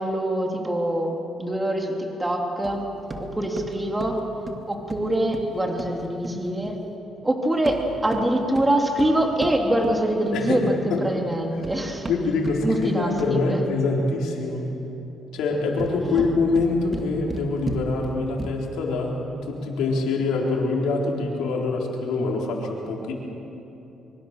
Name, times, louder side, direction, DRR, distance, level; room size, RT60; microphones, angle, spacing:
voice 1, 0.0-2.8 3.2-4.2 4.7-6.7 7.2-12.1 12.6-13.6 16.0-16.2, right 1 dB, 15° right, 1 dB, 3.2 m, -24 dB
sound 1, 2.6-6.8 7.5-10.6 11.3-13.5 15.6-18.8, right 2 dB, 30° right, 2.2 m, -36 dB
voice 2, 10.3-11.1 12.1-14.7 15.3-19.2 19.5-23.1, left 3 dB, 90° left, -1 dB, 4.0 m, -25 dB
24.5 x 23.5 x 6.7 m, 3.0 s
cardioid pair, 90°, 0 cm